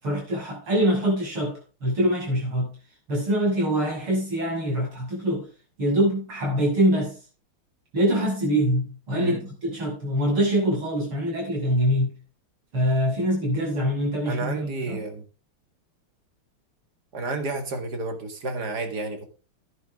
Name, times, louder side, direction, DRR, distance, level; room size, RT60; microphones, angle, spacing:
voice 1, 0.0-2.7 3.1-5.5 5.8-7.2 7.9-12.2 12.7-15.0, equal, 80° right, 8.1 m, -24 dB
voice 2, 14.3-15.2 17.1-19.3, right 2 dB, 50° right, 2.4 m, -30 dB
11.0 x 10.5 x 3.7 m
omnidirectional pair, 2.3 m